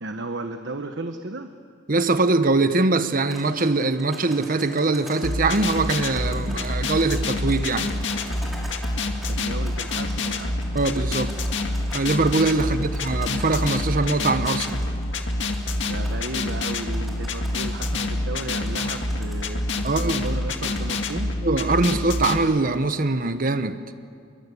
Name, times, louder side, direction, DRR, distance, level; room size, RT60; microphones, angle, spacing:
voice 1, 0.0-1.5 9.3-10.6 12.5-12.9 15.8-21.3, right 2 dB, 70° right, 7 dB, 1.2 m, -34 dB
voice 2, 1.9-7.9 10.7-11.3 11.9-14.8 19.8-20.3 21.4-23.8, right 3 dB, 50° right, 10 dB, 1.1 m, -22 dB
sound 1, 3.2-21.1, equal, ahead, 5.7 m, -45 dB
sound 2, 5.2-22.4, left 2 dB, 75° left, 2.0 m, -27 dB
28.0 x 23.5 x 8.4 m, 2.4 s
head